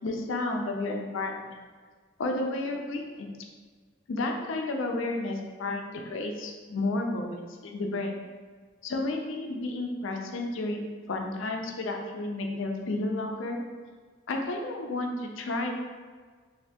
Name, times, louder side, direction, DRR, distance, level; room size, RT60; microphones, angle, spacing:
voice 1, 0.0-1.5 2.2-3.3 4.1-8.2 8.8-13.6 14.3-15.7, left 2 dB, 75° left, 2 dB, 0.4 m, -32 dB
3.2 x 2.6 x 2.7 m, 1.5 s
head